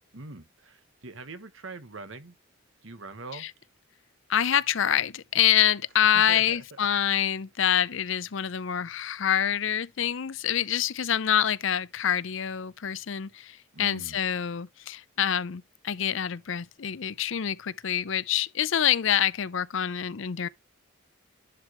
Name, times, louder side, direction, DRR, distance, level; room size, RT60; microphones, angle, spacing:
voice 1, 0.1-2.4 2.8-3.5 6.1-6.6 13.7-14.2, right 3 dB, 70° right, 1.4 m, -42 dB
voice 2, 4.3-20.5, left 9 dB, 65° left, 0.5 m, -26 dB
11.0 x 4.9 x 3.1 m
head